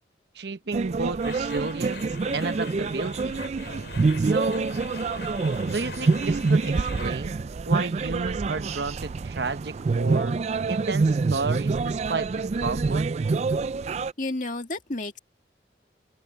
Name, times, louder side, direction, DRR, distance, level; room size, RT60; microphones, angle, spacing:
voice 1, 0.3-3.4 4.2-4.8 5.7-10.4 10.7-13.1, right 3 dB, 65° right, 1.0 m, -32 dB
sound 1, 0.7-14.1, right 4 dB, 35° right, 0.3 m, -26 dB
sound 2, 1.2-7.1, left 4 dB, 75° left, 3.4 m, -42 dB
voice 2, 14.2-15.2, left 2 dB, 45° left, 2.2 m, -31 dB
open air
head